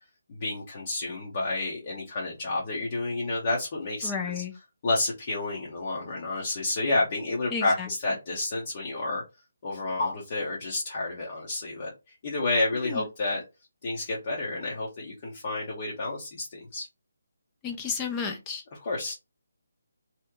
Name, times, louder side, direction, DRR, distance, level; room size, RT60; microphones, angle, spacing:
voice 1, 0.3-4.1 4.3-4.4 4.8-9.2 9.6-11.9 12.2-13.4 13.8-16.9 18.8-19.1, left 2 dB, 35° left, -3 dB, 0.8 m, -30 dB
voice 2, 4.0-4.5 7.5-7.9 12.8-13.0 17.6-18.6, left 5 dB, 15° left, 4 dB, 0.5 m, -32 dB
2.8 x 2.1 x 3.6 m, 0.26 s
hypercardioid pair, 165°, 0 cm